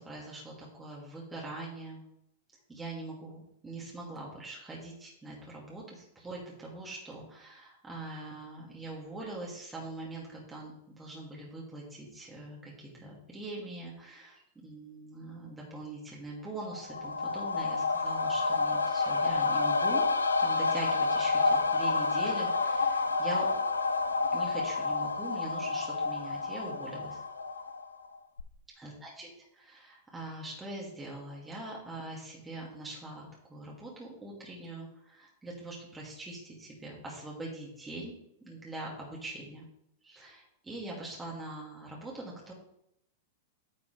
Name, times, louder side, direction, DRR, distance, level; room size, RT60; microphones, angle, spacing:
voice 1, 0.0-2.0 2.7-20.0 20.4-23.5 24.3-27.2 28.8-38.1 38.4-39.6 40.0-42.5, right 2 dB, 15° right, -4 dB, 2.5 m, -42 dB
sound 1, 16.6-28.1 28.4-28.5, left 4 dB, 85° left, 0.5 m, -29 dB
9.5 x 6.8 x 3.4 m, 0.75 s
hypercardioid pair, 100°, 0 cm